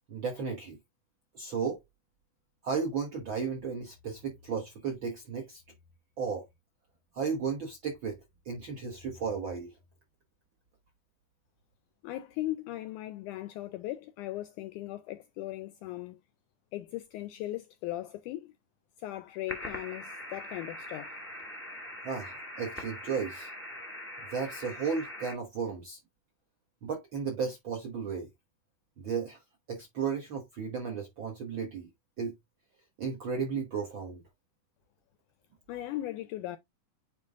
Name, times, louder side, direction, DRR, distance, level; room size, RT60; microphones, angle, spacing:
voice 1, 0.1-0.8 1.3-1.8 2.6-5.6 6.2-6.5 7.1-9.7 22.0-23.5 24.3-26.0 26.8-28.3 29.0-29.4 29.7-31.9 32.2-32.3 33.0-34.2, right 5 dB, 60° right, 1.3 m, -34 dB
voice 2, 12.0-16.2 16.7-18.5 19.0-21.2 35.7-36.6, left 15 dB, 80° left, 1.8 m, -38 dB
sound 1, 19.5-25.3, left 1 dB, 5° left, 1.1 m, -42 dB
9.1 x 3.0 x 3.5 m
omnidirectional pair, 4.0 m